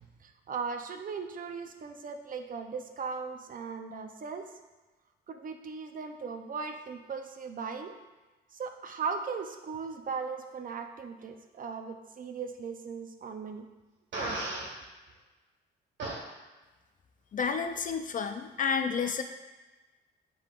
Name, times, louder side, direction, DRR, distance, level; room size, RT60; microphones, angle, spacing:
voice 1, 0.2-4.4 5.3-8.0 8.5-13.7, right 5 dB, 45° right, 6 dB, 0.6 m, -38 dB
Fart, 14.1-14.7 16.0-16.2, right 2 dB, 70° right, 1.7 m, -34 dB
voice 2, 17.3-19.2, left 6 dB, 40° left, 7 dB, 0.5 m, -30 dB
10.0 x 3.8 x 2.5 m, 1.2 s
cardioid pair, 90°, 20 cm